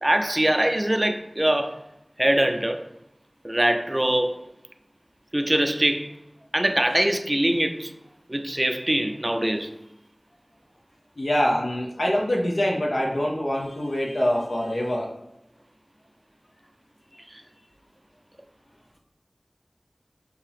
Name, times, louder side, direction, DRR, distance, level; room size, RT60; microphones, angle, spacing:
voice 1, 0.0-1.8 2.2-2.8 3.4-4.5 5.3-6.1 6.5-7.9 8.3-9.7, right 1 dB, 25° right, 0.4 m, -23 dB
voice 2, 11.2-15.1, equal, 75° left, 0.7 m, -24 dB
4.6 x 2.9 x 3.4 m
wide cardioid pair, 45°, 0 cm